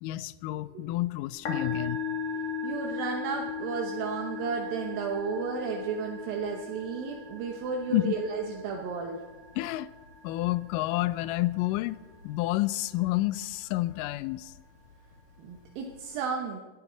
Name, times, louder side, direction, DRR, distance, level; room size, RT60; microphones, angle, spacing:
voice 1, 0.0-2.0 7.9-8.2 9.6-9.9 10.2-12.0 12.2-14.5, left 17 dB, 80° left, 16 dB, 2.0 m, -29 dB
Musical instrument, 1.3-16.0, left 5 dB, 60° left, 3.9 m, -39 dB
voice 2, 2.6-9.2 15.4-16.6, right 5 dB, 80° right, 1 dB, 2.9 m, -33 dB
20.5 x 11.5 x 4.0 m, 1.2 s
omnidirectional pair, 4.2 m